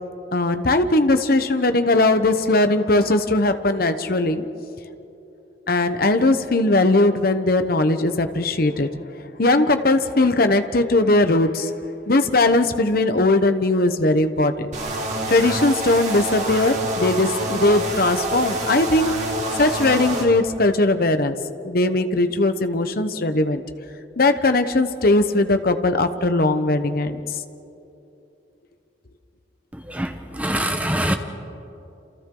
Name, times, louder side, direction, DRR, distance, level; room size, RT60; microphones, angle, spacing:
voice 1, 0.3-4.4 5.7-11.7 12.1-14.7 15.3-19.2 19.6-21.3 21.6-23.6 24.2-27.2, left 2 dB, 50° left, 9 dB, 1.0 m, -19 dB
sound 1, 14.7-20.2, right 1 dB, 40° right, 3.2 m, -27 dB
voice 2, 29.9-31.2, right 1 dB, 10° right, 6 dB, 1.0 m, -24 dB
28.5 x 28.0 x 3.9 m, 2.9 s
head